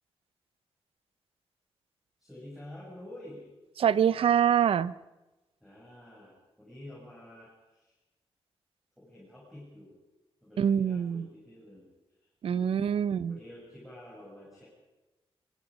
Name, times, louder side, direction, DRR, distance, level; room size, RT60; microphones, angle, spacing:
voice 1, 2.2-3.5 5.6-8.0 9.0-9.9 10.4-11.9 12.5-14.6, left 1 dB, ahead, -6 dB, 7.2 m, -49 dB
voice 2, 3.8-4.9 10.6-11.3 12.4-13.4, right 8 dB, 65° right, 18 dB, 0.7 m, -25 dB
25.0 x 23.0 x 5.2 m, 1.1 s
wide cardioid pair, 155°, 10 cm